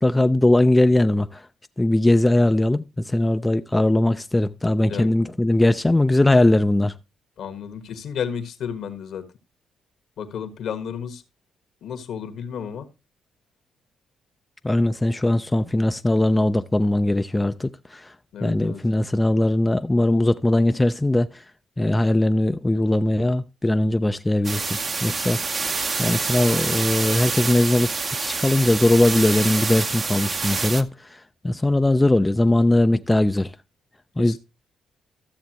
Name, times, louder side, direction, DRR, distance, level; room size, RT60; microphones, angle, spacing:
voice 1, 0.0-1.4 1.8-6.9 14.6-18.1 18.4-21.4 21.8-25.4 26.0-27.9 28.2-33.5 34.2-34.4, left 1 dB, 15° left, 0.4 m, -20 dB
voice 2, 7.4-9.2 10.2-11.2 11.8-12.9 18.3-18.8 34.3-34.4, left 7 dB, 70° left, 1.4 m, -32 dB
sound 1, 24.4-30.8, right 4 dB, 35° right, 0.8 m, -27 dB
13.0 x 7.0 x 2.9 m
cardioid pair, 90°, 0 cm